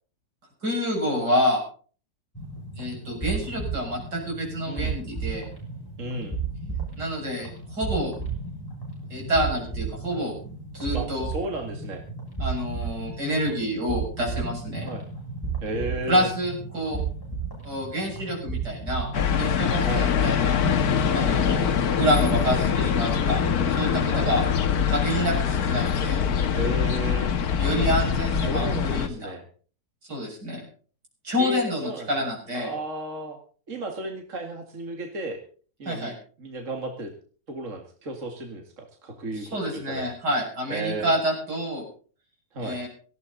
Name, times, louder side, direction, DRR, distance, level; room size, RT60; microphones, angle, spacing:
voice 1, 0.6-1.6 2.8-5.4 7.0-8.1 9.1-10.4 10.7-11.3 12.4-14.9 16.1-17.0 17.6-19.1 19.4-20.6 21.1-24.4 24.9-26.3 27.6-29.3 30.1-30.6 31.2-32.7 35.9-36.1 39.3-41.9 42.6-42.9, equal, 85° right, -1 dB, 7.4 m, -28 dB
sound 1, 2.3-19.2, right 5 dB, 15° left, 7.3 m, -34 dB
voice 2, 6.0-6.4 10.9-12.0 14.8-15.0 15.6-16.3 19.8-20.1 21.1-21.4 24.1-24.3 26.6-27.3 27.8-27.9 28.3-29.4 31.4-32.3 32.5-33.4 33.7-35.4 35.8-37.1 37.5-40.1 40.7-41.1 42.5-42.8, right 1 dB, 50° right, 3 dB, 2.5 m, -33 dB
sound 2, 19.1-29.1, left 7 dB, 65° left, 1.6 m, -23 dB
18.0 x 15.5 x 4.1 m, 0.42 s
omnidirectional pair, 1.8 m